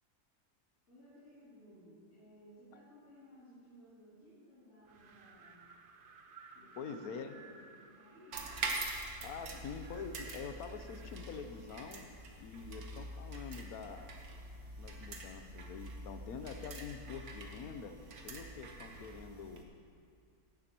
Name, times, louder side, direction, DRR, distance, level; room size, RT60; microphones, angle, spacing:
voice 1, 0.9-5.7 6.5-8.6, equal, 50° left, -12 dB, 3.5 m, -58 dB
Wind, 4.9-11.3, right 5 dB, 55° right, 0.6 m, -58 dB
voice 2, 6.8-7.3 9.2-12.1 12.4-14.1 14.8-18.0 18.2-19.6, left 6 dB, 80° left, 7 dB, 1.2 m, -45 dB
sound 1, 8.3-19.6, right 2 dB, 75° right, 1.6 m, -45 dB
16.0 x 11.5 x 3.0 m, 2.5 s
omnidirectional pair, 1.6 m